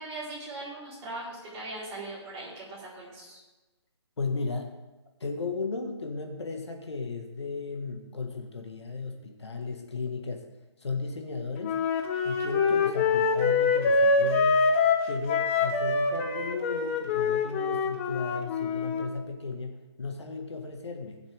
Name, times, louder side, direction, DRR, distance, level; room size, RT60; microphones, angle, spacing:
voice 1, 0.0-3.4, right 2 dB, 20° right, -8 dB, 4.8 m, -40 dB
voice 2, 4.2-4.8 5.2-10.5 10.8-11.8 12.2-14.7 15.1-21.2, left 4 dB, 70° left, 3 dB, 1.9 m, -35 dB
Wind instrument woodwind instrument, 11.6-19.0, left 4 dB, 25° left, 1.1 m, -25 dB
20.0 x 7.2 x 3.7 m, 1.1 s
figure-of-eight pair, 150°, 15 cm